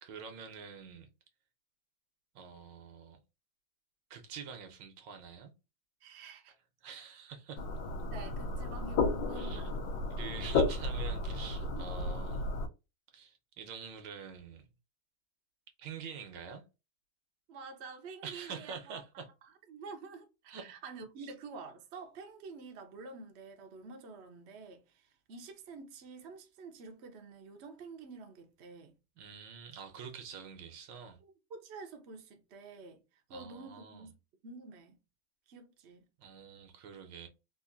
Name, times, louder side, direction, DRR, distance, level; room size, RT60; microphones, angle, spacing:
voice 1, 0.0-1.1 2.3-3.2 4.1-5.5 6.8-7.6 9.3-9.7 10.2-12.4 13.1-14.7 15.8-16.6 18.2-19.3 20.5-20.8 21.2-21.3 29.2-31.2 33.3-34.1 36.2-37.3, right 6 dB, 75° right, 1.4 m, -46 dB
voice 2, 6.0-6.5 8.1-9.7 10.2-10.4 11.6-11.9 17.5-19.0 19.7-28.9 31.2-33.0 33.3-34.1 34.4-35.0 35.5-36.1, right 4 dB, 60° right, 0.7 m, -48 dB
sound 1, 7.6-12.7, left 3 dB, 75° left, 1.3 m, -33 dB
3.8 x 2.6 x 2.5 m
omnidirectional pair, 2.0 m